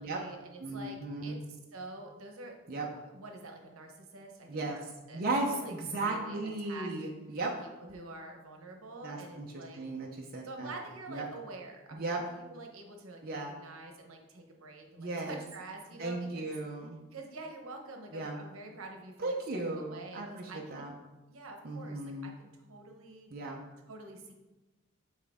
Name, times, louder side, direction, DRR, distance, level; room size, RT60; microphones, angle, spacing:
voice 1, 0.0-1.4 1.7-5.2 5.6-7.1 7.6-9.8 10.4-16.6 17.1-19.4 19.7-20.8 21.3-23.3 23.9-24.3, right 2 dB, 75° right, 2 dB, 1.0 m, -47 dB
voice 2, 0.6-1.4 2.7-2.9 4.5-4.8 5.1-7.6 9.0-10.7 11.1-11.3 11.9-12.2 13.2-13.5 15.0-15.4 16.0-17.0 18.1-18.4 19.2-20.9 21.6-22.3 23.3-23.6, right 2 dB, 45° right, -1 dB, 0.6 m, -36 dB
7.3 x 4.4 x 3.5 m, 1.1 s
head